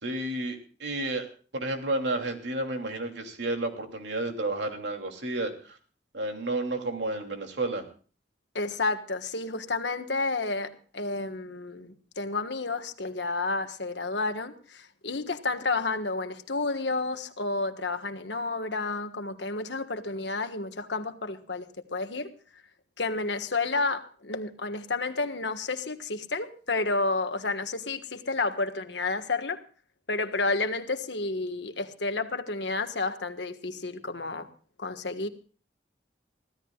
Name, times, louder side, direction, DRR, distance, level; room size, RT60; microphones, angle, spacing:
voice 1, 0.0-1.3 1.5-5.8 6.1-7.8, right 2 dB, 80° right, 4 dB, 2.9 m, -31 dB
voice 2, 8.5-22.3 23.0-29.6 30.1-34.5 34.8-35.3, left 3 dB, 80° left, 8 dB, 1.5 m, -31 dB
24.5 x 16.0 x 2.4 m, 0.40 s
head